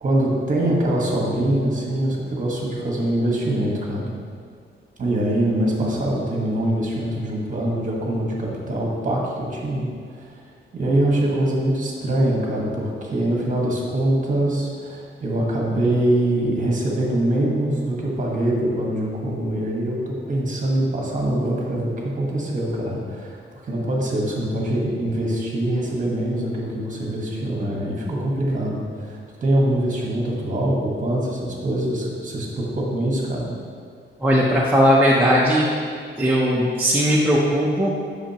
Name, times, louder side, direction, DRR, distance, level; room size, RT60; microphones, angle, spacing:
voice 1, 0.0-4.1 5.0-10.4 10.7-33.5, right 1 dB, 40° right, -2 dB, 1.4 m, -23 dB
voice 2, 28.1-28.4 34.2-35.7 36.2-37.9, equal, 10° right, -4 dB, 0.6 m, -18 dB
8.8 x 6.3 x 2.9 m, 2.1 s
wide cardioid pair, 155°, 21 cm